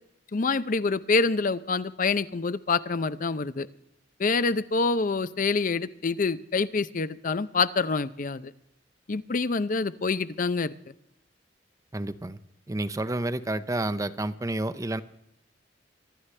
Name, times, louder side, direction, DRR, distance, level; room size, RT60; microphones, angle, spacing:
voice 1, 0.3-3.7 4.2-8.5 9.1-10.7, left 4 dB, 45° left, 15 dB, 0.6 m, -26 dB
voice 2, 11.9-12.4 12.7-15.0, right 1 dB, 20° right, 12 dB, 0.6 m, -30 dB
24.5 x 12.5 x 3.3 m, 0.75 s
head